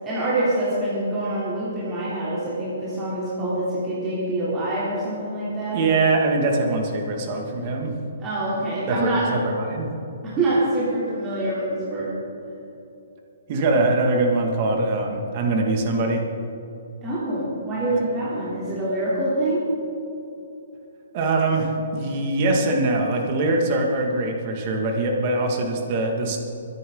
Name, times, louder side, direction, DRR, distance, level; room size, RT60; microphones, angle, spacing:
voice 1, 0.0-5.8 8.2-9.4 10.4-12.1 17.0-19.6, right 1 dB, 20° right, -10 dB, 3.4 m, -25 dB
voice 2, 5.7-7.9 8.9-9.9 13.5-16.3 21.1-26.4, right 2 dB, 35° right, 2 dB, 2.2 m, -23 dB
22.5 x 10.5 x 3.9 m, 2.9 s
hypercardioid pair, 160°, 0 cm